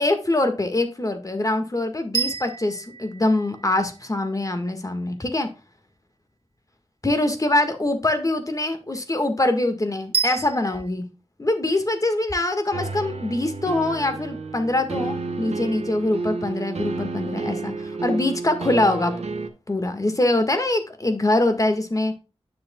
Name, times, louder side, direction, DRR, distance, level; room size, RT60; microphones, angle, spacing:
voice 1, 0.0-5.5 7.0-11.1 11.4-19.2 19.7-22.1, left 2 dB, 30° left, 7 dB, 1.6 m, -23 dB
sound 1, 2.1-4.3 10.1-10.9, right 6 dB, 60° right, 0.7 m, -29 dB
sound 2, 12.7-19.5, right 3 dB, 90° right, 1.2 m, -31 dB
10.0 x 6.3 x 2.2 m, 0.30 s
wide cardioid pair, 85°, 11 cm